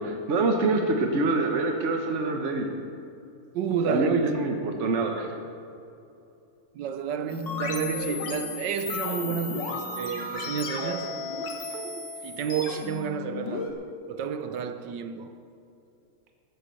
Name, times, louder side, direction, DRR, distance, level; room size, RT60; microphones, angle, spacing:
voice 1, 0.0-2.7 3.9-5.3, right 3 dB, 50° right, 0.9 m, -25 dB
voice 2, 3.5-4.2 6.7-11.1 11.7-13.8 14.1-15.4, right 7 dB, 70° right, 1.1 m, -31 dB
sound 1, 7.3-13.7, left 4 dB, 55° left, 2.0 m, -34 dB
14.5 x 8.0 x 6.9 m
omnidirectional pair, 2.4 m